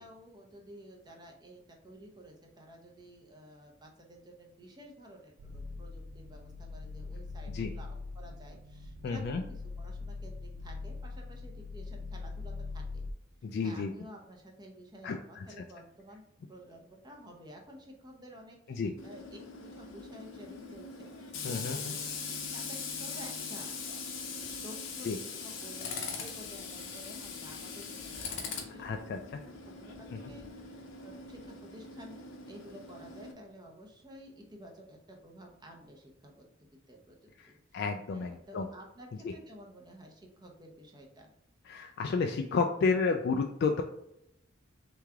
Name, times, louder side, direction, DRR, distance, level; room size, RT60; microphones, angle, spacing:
voice 1, 0.0-13.1 13.6-16.2 16.5-19.4 19.8-23.7 24.2-29.5 29.8-36.5 36.9-37.2 37.5-37.8 38.1-41.3, equal, 20° right, 1 dB, 0.8 m, -52 dB
sound 1, 5.4-13.1, left 3 dB, 80° right, 0.4 m, -42 dB
voice 2, 9.0-9.4 13.4-13.9 15.0-15.6 18.7-18.9 21.4-21.9 25.0-25.2 28.8-29.2 30.1-30.2 37.7-38.7 41.7-43.8, left 4 dB, 55° left, 4 dB, 0.3 m, -31 dB
Tools, 19.0-33.3, left 5 dB, 75° left, 0.8 m, -41 dB
3.4 x 3.2 x 3.5 m, 0.80 s
head